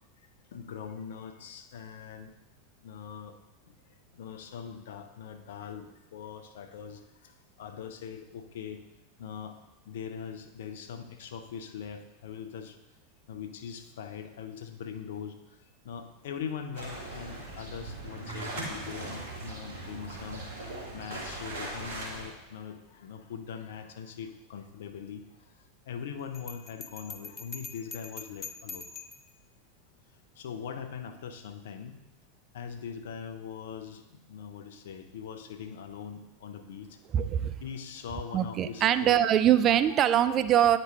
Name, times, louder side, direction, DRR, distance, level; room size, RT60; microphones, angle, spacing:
voice 1, 0.5-2.3 2.8-3.3 4.2-7.0 7.6-8.8 9.2-9.6 9.9-12.7 13.3-15.3 15.9-20.4 20.9-25.2 25.9-28.8 30.4-32.0 32.5-34.0 34.3-36.9 37.6-39.2, left 7 dB, 65° left, 8 dB, 0.6 m, -41 dB
sound 1, 16.7-22.3, right 2 dB, 65° right, 1.8 m, -39 dB
Bell, 26.3-29.3, left 5 dB, 20° left, 0.5 m, -43 dB
voice 2, 37.1-37.6 38.3-40.8, right 10 dB, 35° right, 12 dB, 0.4 m, -23 dB
9.4 x 5.3 x 3.2 m, 1.0 s
figure-of-eight pair, 85°, 0 cm